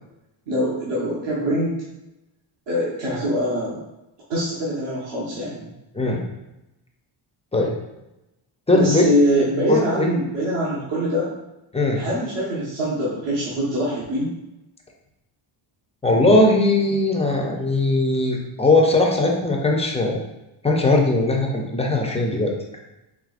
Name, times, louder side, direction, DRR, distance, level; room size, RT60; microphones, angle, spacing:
voice 1, 0.5-1.8 2.7-3.8 4.3-5.7 8.7-11.3 11.9-14.3, equal, 55° right, -7 dB, 1.2 m, -23 dB
voice 2, 8.7-9.0 9.7-10.1 11.7-12.0 16.0-20.2 20.6-22.5, left 2 dB, 15° left, 1 dB, 0.5 m, -19 dB
4.9 x 3.3 x 2.4 m, 0.94 s
cardioid pair, 135°, 49 cm